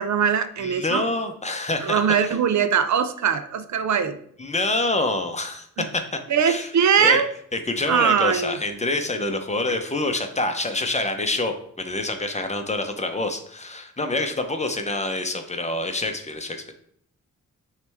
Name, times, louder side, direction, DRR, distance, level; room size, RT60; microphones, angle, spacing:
voice 1, 0.0-1.0 1.8-4.2 6.3-7.3 7.9-8.6, right 7 dB, 60° right, 9 dB, 0.6 m, -21 dB
voice 2, 0.6-2.4 4.4-5.7 5.9-6.7 7.0-7.2 7.5-16.7, left 2 dB, 20° left, 6 dB, 0.7 m, -27 dB
9.2 x 3.3 x 3.4 m, 0.67 s
wide cardioid pair, 115°, 32 cm